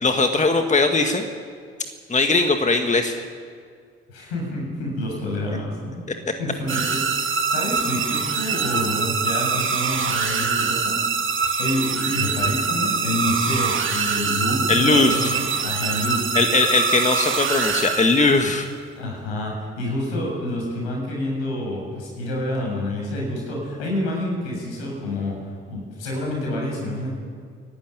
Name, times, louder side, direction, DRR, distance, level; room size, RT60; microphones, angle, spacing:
voice 1, 0.0-1.3 2.1-3.3 14.7-15.4 16.3-18.7, left 3 dB, 25° left, 6 dB, 1.9 m, -19 dB
voice 2, 4.1-6.0 6.4-16.3 18.9-27.1, left 1 dB, 75° left, -1 dB, 7.2 m, -28 dB
sound 1, 6.7-18.5, right 5 dB, 40° right, 2.7 m, -24 dB
26.0 x 12.0 x 9.5 m, 2.1 s
figure-of-eight pair, 50°, 30 cm